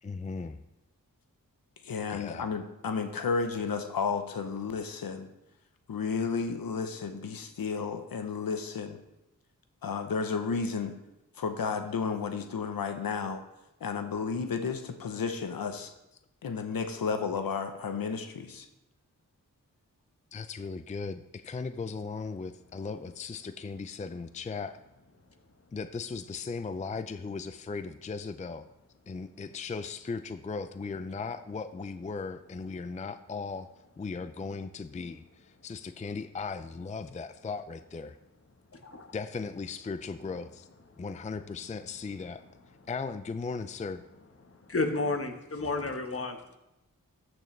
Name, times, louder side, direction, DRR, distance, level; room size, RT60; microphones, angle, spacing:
voice 1, 0.0-0.6 2.1-2.5 20.3-24.8 25.7-28.7 29.1-33.7 34.0-38.2 39.1-40.7 41.0-42.4 42.9-44.0, left 4 dB, 20° left, 11 dB, 0.4 m, -37 dB
voice 2, 1.8-5.3 5.9-9.0 9.8-10.9 11.4-13.4 13.8-15.9 16.4-18.7, left 5 dB, 90° left, 7 dB, 0.8 m, -32 dB
voice 3, 38.7-39.1 44.4-46.6, left 3 dB, 40° left, 6 dB, 1.2 m, -32 dB
13.5 x 6.2 x 3.2 m, 0.92 s
cardioid pair, 55°, 34 cm